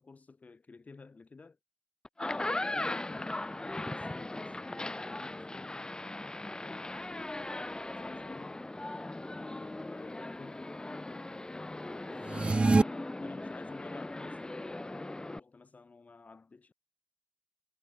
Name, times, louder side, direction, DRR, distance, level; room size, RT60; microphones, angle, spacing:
voice 1, 0.0-1.6 2.2-5.9 6.6-8.7 9.4-12.8 13.2-16.7, left 4 dB, 70° left, 4.8 m, -52 dB
sound 1, 2.0-15.4, left 2 dB, 30° left, 1.0 m, -39 dB
sound 2, 12.2-12.8, right 3 dB, 45° right, 0.4 m, -24 dB
cardioid pair, 45°, 3 cm